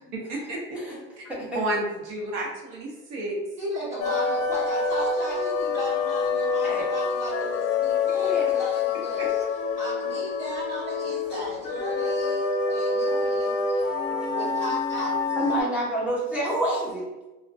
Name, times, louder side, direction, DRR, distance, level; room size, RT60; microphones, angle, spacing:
voice 1, 0.1-0.8 1.2-1.3 1.5-3.3 9.2-9.3, right 1 dB, 65° right, -2 dB, 0.8 m, -31 dB
voice 2, 1.2-1.6 6.6-6.9 8.1-8.5 11.3-11.4 12.7-13.1 13.7-14.1 15.4-17.2, right 1 dB, 5° right, -7 dB, 0.6 m, -29 dB
voice 3, 3.6-9.4 9.8-13.6 14.3-15.1, equal, 40° right, -10 dB, 1.1 m, -36 dB
sound 1, 4.0-15.6, left 4 dB, 55° left, 0.5 m, -26 dB
2.4 x 2.2 x 2.3 m, 1.1 s
supercardioid pair, 120°, 29 cm